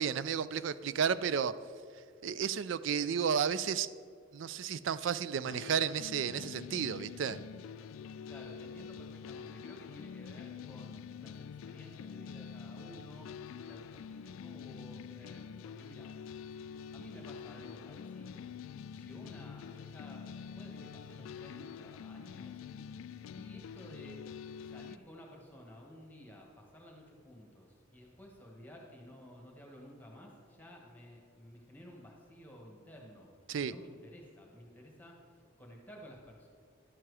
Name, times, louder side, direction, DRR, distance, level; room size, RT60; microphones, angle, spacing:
voice 1, 0.0-1.5 2.2-3.9 4.3-7.4 33.5-33.7, right 7 dB, 70° right, 16 dB, 0.4 m, -32 dB
sound 1, 5.5-25.0, left 7 dB, 85° left, 0.3 m, -46 dB
voice 2, 8.2-16.1 16.9-18.5 18.9-22.6 23.3-24.2 24.7-33.3 33.6-36.5, equal, 10° left, -1 dB, 1.4 m, -53 dB
11.5 x 7.5 x 4.8 m, 2.2 s
head